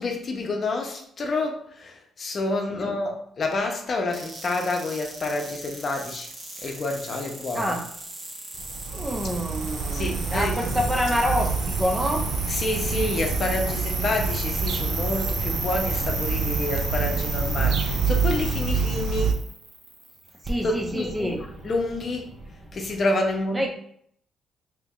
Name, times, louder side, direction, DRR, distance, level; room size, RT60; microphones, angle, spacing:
voice 1, 0.0-6.3 6.6-7.7 9.9-10.6 12.5-19.3 20.6-21.4 21.6-22.3 22.7-23.7, left 2 dB, 45° left, 2 dB, 0.7 m, -28 dB
sound 1, 4.1-23.0, right 2 dB, 40° right, 0.9 m, -35 dB
voice 2, 7.5-7.9 8.9-12.3 20.4-21.4 23.5-23.7, equal, 15° right, 3 dB, 0.5 m, -27 dB
sound 2, 8.6-19.3, right 5 dB, 70° right, 0.4 m, -27 dB
2.9 x 2.6 x 3.6 m, 0.67 s
cardioid pair, 90°, 0 cm